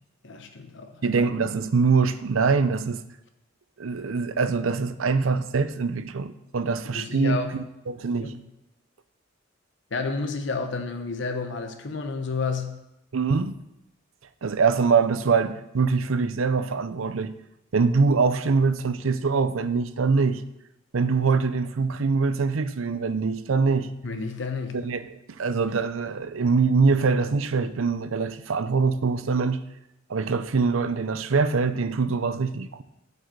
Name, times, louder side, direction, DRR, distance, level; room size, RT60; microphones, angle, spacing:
voice 1, 0.2-1.0 6.9-7.6 8.2-8.4 9.9-12.8 24.0-24.8, left 4 dB, 60° left, 0.9 m, -31 dB
voice 2, 1.0-3.0 3.8-8.3 13.1-13.5 14.4-17.3 17.7-20.4 20.9-23.9 24.7-25.1 25.4-29.6 30.1-32.8, right 4 dB, 90° right, 0.6 m, -23 dB
7.6 x 5.6 x 7.7 m
head